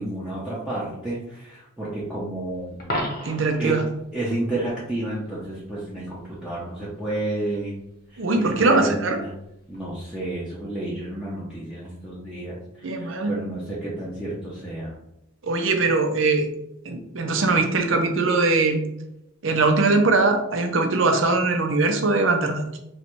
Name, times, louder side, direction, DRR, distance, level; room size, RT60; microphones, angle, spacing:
voice 1, 0.0-2.8 3.6-3.8 4.1-7.7 8.1-9.3 9.7-14.9, right 1 dB, 5° right, -9 dB, 0.7 m, -31 dB
Coin (dropping), 2.8-3.7 9.7-9.9, equal, 50° left, 0.9 m, -30 dB
voice 2, 3.2-3.8 8.2-9.2 12.8-13.3 15.4-16.5 16.9-18.8 19.4-22.8, right 3 dB, 65° right, 5 dB, 0.6 m, -21 dB
3.2 x 2.8 x 4.5 m, 0.85 s
head